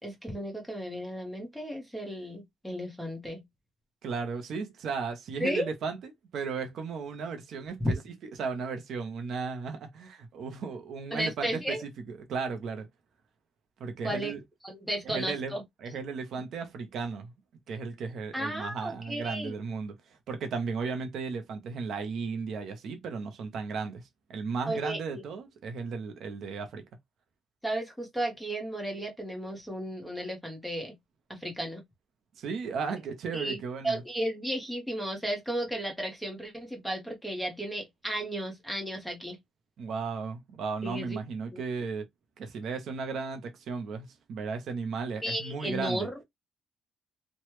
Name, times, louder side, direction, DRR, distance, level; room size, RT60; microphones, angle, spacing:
voice 1, 0.0-3.4 5.4-5.7 7.8-7.9 11.1-11.8 14.0-14.3 14.6-15.6 18.3-19.5 24.7-25.2 27.6-30.9 31.3-31.8 33.3-33.6 33.8-39.4 40.8-41.2 41.5-41.6 45.2-46.2, right 1 dB, ahead, 1.0 m, -34 dB
voice 2, 4.0-12.9 13.8-14.4 15.0-15.5 15.8-17.3 17.7-19.9 20.3-24.0 24.3-26.8 32.4-34.0 39.8-42.1 42.4-46.1, right 5 dB, 65° right, 0.7 m, -35 dB
3.1 x 2.2 x 3.0 m
cardioid pair, 135°, 0 cm